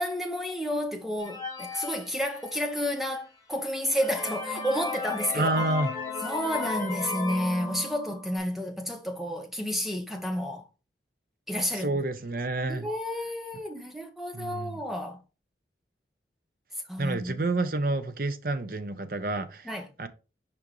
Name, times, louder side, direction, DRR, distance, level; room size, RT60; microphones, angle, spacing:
voice 1, 0.0-5.7 6.2-10.6 11.5-12.0 12.7-15.2 16.9-17.4 19.6-19.9, equal, ahead, 1.0 m, -31 dB
sound 1, 1.2-2.8 3.4-3.5 3.9-8.4, left 4 dB, 20° left, 1.4 m, -35 dB
voice 2, 5.3-5.9 11.8-12.9 14.3-14.8 17.0-19.7 20.0-20.1, right 2 dB, 50° right, 0.7 m, -29 dB
6.0 x 5.1 x 3.1 m
head